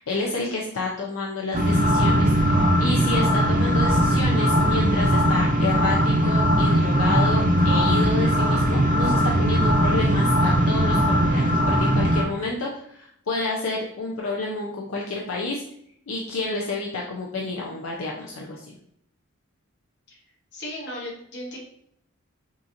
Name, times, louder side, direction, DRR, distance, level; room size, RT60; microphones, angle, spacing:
voice 1, 0.0-15.6 16.1-18.8, left 2 dB, 75° left, -1 dB, 0.6 m, -30 dB
sound 1, 1.5-12.2, equal, 40° right, 0.6 m, -20 dB
voice 2, 20.5-21.6, left 1 dB, 55° left, -3 dB, 1.4 m, -35 dB
5.4 x 2.8 x 2.6 m, 0.68 s
head